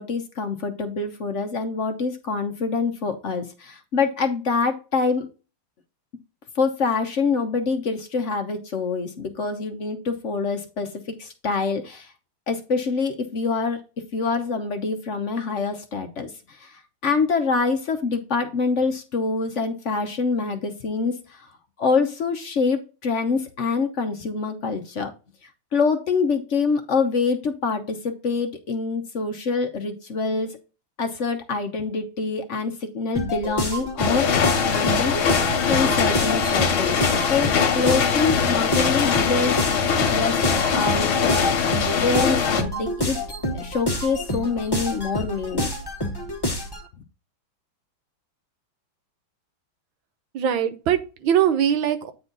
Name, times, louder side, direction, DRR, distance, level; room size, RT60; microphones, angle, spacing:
voice 1, 0.0-5.3 6.5-12.1 12.5-13.8 14.1-21.5 21.8-25.1 25.7-30.6 31.0-35.1 35.7-37.0 37.3-39.6 40.1-43.2 43.5-45.7, left 4 dB, 50° left, 6 dB, 0.9 m, -25 dB
sound 1, 33.1-46.9, left 1 dB, 20° left, 0.7 m, -28 dB
sound 2, 34.0-42.6, left 6 dB, 85° left, 2.1 m, -22 dB
voice 2, 50.3-52.1, right 9 dB, 75° right, 10 dB, 1.6 m, -21 dB
8.9 x 4.2 x 3.9 m, 0.32 s
omnidirectional pair, 2.2 m